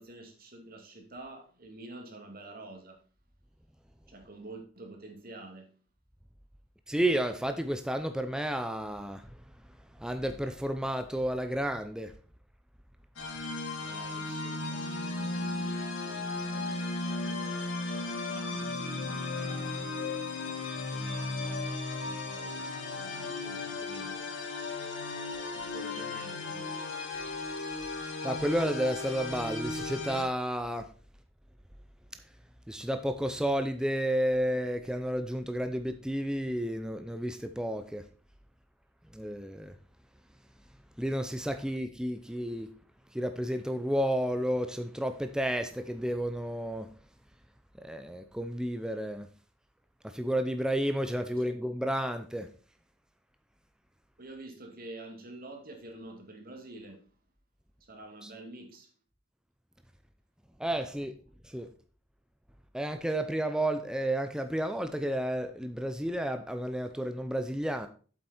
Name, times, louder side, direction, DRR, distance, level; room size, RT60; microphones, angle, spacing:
voice 1, 0.0-3.0 4.1-5.7 13.8-20.0 20.7-24.3 25.5-26.8 51.3-51.4 54.2-57.1 57.8-58.9, right 2 dB, 50° right, 2.4 m, -48 dB
voice 2, 6.9-9.4 10.0-12.1 28.2-30.9 32.7-38.0 39.1-39.7 41.0-42.7 43.1-46.9 47.8-49.3 50.0-52.5 58.2-58.3 60.6-61.1 61.4-61.7 62.7-67.9, right 1 dB, 5° right, 0.6 m, -31 dB
sound 1, 13.2-30.2, left 3 dB, 70° left, 2.8 m, -35 dB
8.2 x 7.8 x 4.3 m
head